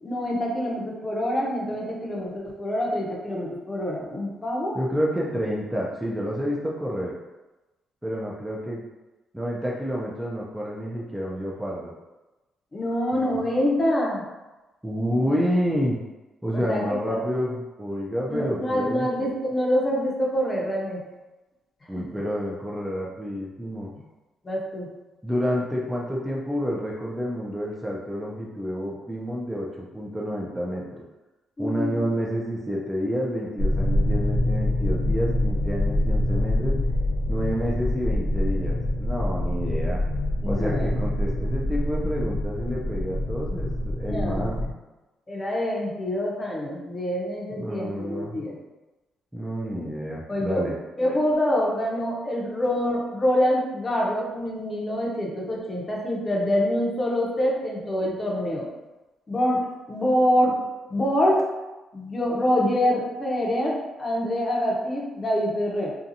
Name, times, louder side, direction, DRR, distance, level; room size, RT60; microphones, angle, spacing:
voice 1, 0.0-4.8 12.7-14.2 15.2-15.4 16.5-17.2 18.3-21.1 22.0-22.2 24.4-24.9 31.6-32.1 40.4-41.0 44.0-44.7 45.3-48.6 50.3-50.7 51.0-58.7 59.3-60.6 60.9-61.5 61.9-65.9, equal, 30° left, -3 dB, 0.7 m, -26 dB
voice 2, 4.7-7.1 8.0-8.8 9.3-11.9 13.1-13.4 14.8-16.0 16.4-19.1 21.9-23.9 25.2-31.0 31.6-36.7 37.3-40.0 40.5-44.5 47.6-48.3 49.3-50.7, equal, 5° right, -4 dB, 0.4 m, -29 dB
sound 1, 33.6-44.7, left 1 dB, 55° left, 1.0 m, -25 dB
2.7 x 2.3 x 2.6 m, 1.1 s
cardioid pair, 90°, 0 cm